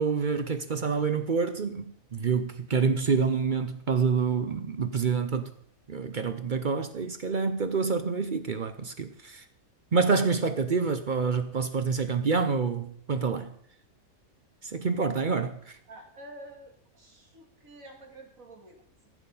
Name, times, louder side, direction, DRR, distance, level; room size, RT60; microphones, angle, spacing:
voice 1, 0.0-1.8 2.1-5.5 5.9-9.4 9.9-13.5 14.6-15.8, right 5 dB, 45° right, 0.7 m, -27 dB
voice 2, 15.9-19.1, right 1 dB, 70° right, 2.6 m, -49 dB
14.5 x 7.3 x 5.5 m
omnidirectional pair, 1.5 m